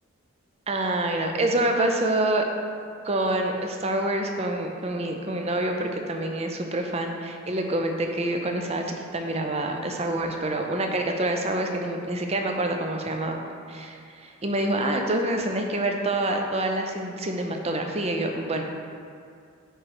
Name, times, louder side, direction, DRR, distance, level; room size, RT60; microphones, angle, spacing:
voice 1, 0.7-2.5 3.0-7.1 7.5-13.4 13.7-18.6, right 1 dB, 30° right, 3 dB, 0.5 m, -26 dB
8.8 x 3.2 x 4.6 m, 2.3 s
head